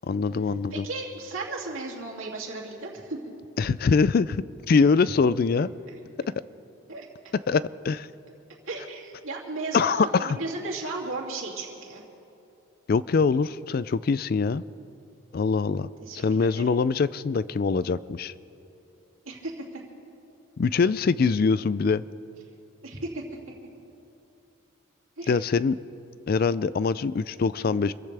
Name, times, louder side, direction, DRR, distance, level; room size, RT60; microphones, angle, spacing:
voice 1, 0.0-0.9 3.6-5.7 7.5-8.1 9.7-10.4 12.9-14.6 15.3-15.9 16.1-18.3 20.6-22.0 25.3-25.8 26.3-27.9, left 4 dB, 45° left, 17 dB, 0.3 m, -23 dB
voice 2, 0.7-3.2 6.9-7.1 8.7-12.0 16.0-16.7 19.2-19.6 22.8-23.2 25.2-25.4, right 3 dB, 70° right, -3 dB, 2.8 m, -35 dB
27.0 x 15.0 x 3.4 m, 2.8 s
head